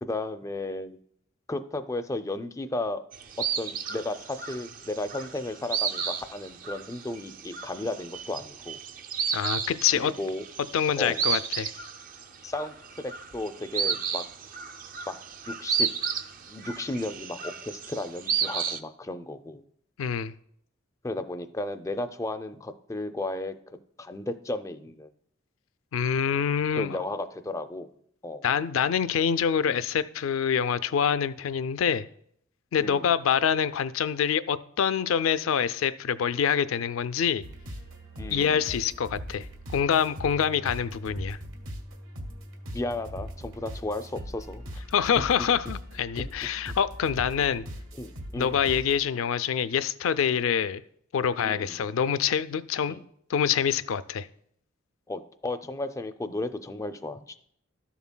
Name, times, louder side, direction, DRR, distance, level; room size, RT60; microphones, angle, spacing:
voice 1, 0.0-1.0 1.5-3.0 3.4-8.8 9.9-10.4 11.0-11.4 12.4-14.2 15.1-15.2 15.5-15.9 16.5-19.6 21.0-25.1 26.7-27.9 28.2-28.5 32.8-33.1 38.2-38.7 42.7-44.9 48.0-48.7 51.4-51.9 52.9-53.0 55.1-57.4, left 2 dB, 15° left, 9 dB, 0.4 m, -34 dB
sound 1, 3.1-18.8, right 7 dB, 45° right, 0.4 m, -33 dB
voice 2, 9.3-10.1 10.7-11.7 20.0-20.3 25.9-27.0 28.4-32.1 32.7-37.4 38.3-39.5 39.7-41.4 44.9-47.7 48.4-50.8 51.1-53.0 53.3-54.3, left 7 dB, 85° left, 14 dB, 0.4 m, -26 dB
sound 2, 37.4-49.0, equal, 80° right, 1.2 m, -40 dB
13.0 x 7.0 x 2.2 m, 0.67 s
head